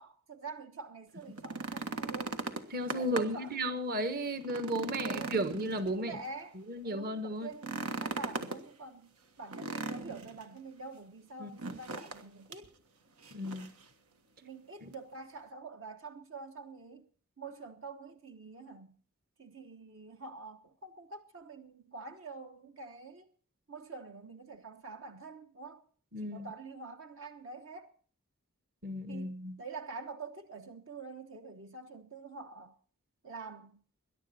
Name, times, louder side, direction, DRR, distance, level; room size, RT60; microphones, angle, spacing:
voice 1, 0.0-2.4 2.9-4.1 4.9-5.4 6.0-12.7 14.4-17.1 17.4-19.0 19.4-23.3 23.7-25.8 26.2-27.9 29.1-32.8 33.2-33.8, right 4 dB, 65° right, 1.3 m, -46 dB
sound 1, 1.2-3.5 3.9-4.0 4.4-6.3 7.5-8.6 9.5-10.4 11.6-12.2 12.5-12.7 13.2-13.8 14.9-15.0, right 3 dB, 90° right, 1.6 m, -38 dB
voice 2, 2.7-6.2 6.7-7.5 11.4-11.7 13.3-13.7 14.8-14.9 26.1-26.5 28.8-29.6, right 1 dB, 45° right, 1.4 m, -34 dB
21.5 x 11.0 x 4.3 m
head